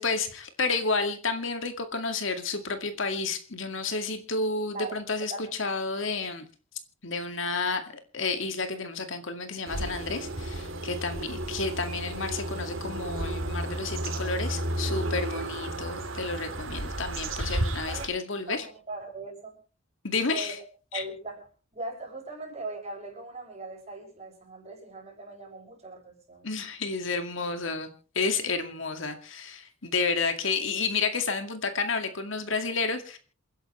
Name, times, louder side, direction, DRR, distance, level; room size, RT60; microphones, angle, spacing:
voice 1, 0.0-6.4 7.0-18.6 20.0-20.6 20.9-21.0 26.4-33.2, left 4 dB, 65° left, 7 dB, 2.2 m, -31 dB
sound 1, 9.7-18.1, right 1 dB, 70° right, 3.3 m, -33 dB
voice 2, 18.5-19.6 20.3-20.6 20.9-21.5 21.7-26.5, right 2 dB, 30° right, 1 dB, 6.5 m, -39 dB
28.5 x 11.0 x 3.3 m, 0.38 s
head